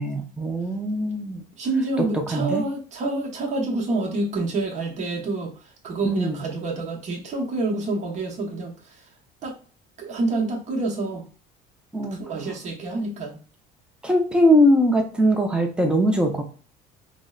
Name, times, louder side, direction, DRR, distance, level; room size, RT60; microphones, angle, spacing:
voice 1, 0.0-1.4 2.1-2.6 6.0-6.4 11.9-12.2 14.0-16.4, equal, 5° right, 3 dB, 0.6 m, -21 dB
voice 2, 1.6-5.5 5.8-9.0 9.4-9.5 10.0-11.2 12.2-13.4, right 2 dB, 40° right, -1 dB, 1.1 m, -27 dB
5.0 x 2.1 x 2.4 m, 0.38 s
cardioid pair, 130°, 19 cm